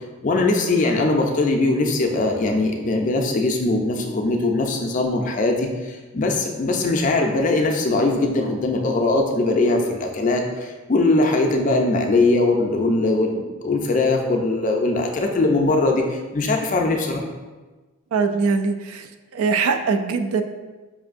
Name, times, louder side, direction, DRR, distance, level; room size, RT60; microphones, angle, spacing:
voice 1, 0.2-17.2, left 2 dB, 35° left, 2 dB, 0.4 m, -21 dB
voice 2, 18.1-19.0 19.3-20.4, right 4 dB, 85° right, 8 dB, 0.3 m, -21 dB
5.4 x 2.5 x 2.5 m, 1.2 s
head